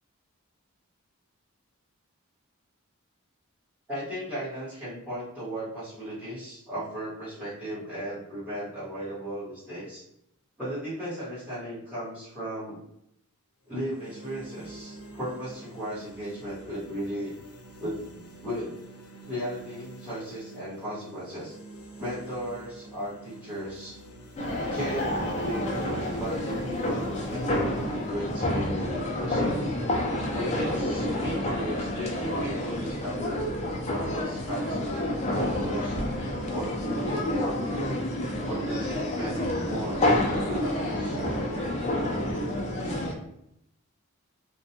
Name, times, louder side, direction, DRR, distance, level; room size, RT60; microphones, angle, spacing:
voice 1, 3.9-10.0 10.6-12.8 13.7-17.3 17.8-18.8 19.3-21.5 22.0-24.0 24.7-25.7 26.2-29.7 30.3-33.5 33.9-36.0 36.5-37.6 38.4-41.2, equal, 5° right, -12 dB, 1.2 m, -36 dB
sound 1, 13.6-29.7, right 2 dB, 85° left, 0.6 m, -48 dB
sound 2, 24.4-43.1, left 1 dB, 30° left, 0.4 m, -29 dB
2.5 x 2.2 x 2.7 m, 0.78 s
head